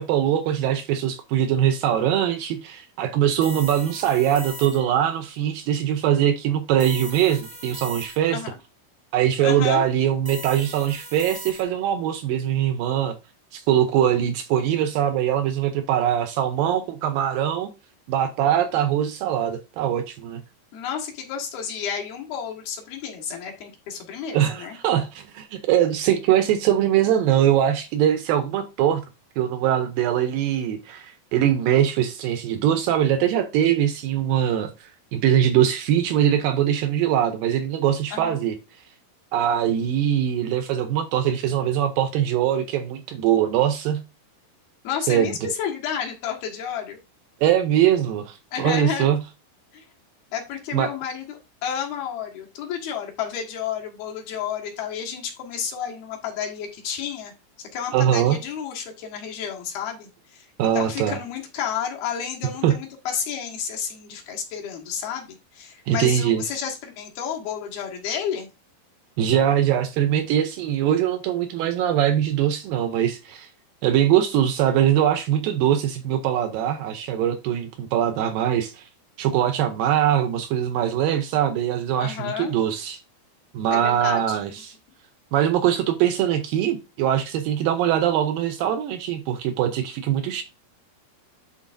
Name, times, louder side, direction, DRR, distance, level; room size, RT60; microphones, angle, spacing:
voice 1, 0.0-8.4 9.1-13.1 13.5-17.7 18.1-20.4 24.3-29.0 29.4-38.6 39.3-44.0 45.1-45.5 47.4-49.2 50.7-50.9 57.9-58.4 60.6-61.2 62.6-62.8 65.9-66.4 69.2-73.5 73.8-78.9 79.2-83.0 83.5-84.7 85.3-90.4, right 10 dB, 80° right, 2.0 m, -22 dB
Heart Monitor Beep Loop, 3.4-5.1 6.8-8.5 10.2-11.9, right 1 dB, 15° right, 0.8 m, -39 dB
voice 2, 9.4-9.8 20.7-24.8 38.1-38.4 44.8-47.0 48.5-49.1 49.7-49.8 50.3-57.3 57.7-60.5 60.7-68.5 82.0-82.5 83.7-84.4, left 8 dB, 70° left, 3.3 m, -31 dB
11.0 x 4.0 x 2.6 m
omnidirectional pair, 4.7 m